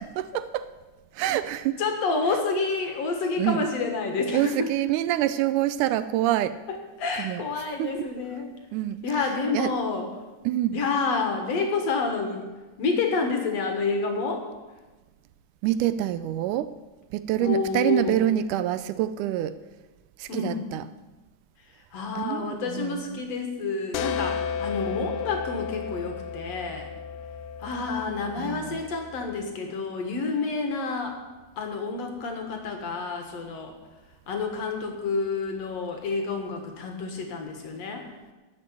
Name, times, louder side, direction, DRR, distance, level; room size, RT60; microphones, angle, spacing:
voice 1, 0.2-0.7 1.1-1.8 3.4-3.7 4.3-6.6 7.2-7.4 7.8-8.1 8.7-9.0 9.5-9.7 10.5-10.8 15.6-16.7 17.1-19.6 20.2-20.8 22.2-23.2 28.4-28.8, right 13 dB, 80° right, 13 dB, 2.0 m, -26 dB
voice 2, 1.8-4.7 6.7-8.5 9.0-10.1 10.7-12.5 12.8-14.5 17.4-18.2 20.3-20.6 21.9-26.9 27.6-31.2 31.6-33.8 34.3-38.1, left 4 dB, 60° left, 4 dB, 2.4 m, -29 dB
sound 1, 23.9-29.4, left 7 dB, 85° left, 2.2 m, -34 dB
12.5 x 6.6 x 9.6 m, 1.2 s
omnidirectional pair, 3.7 m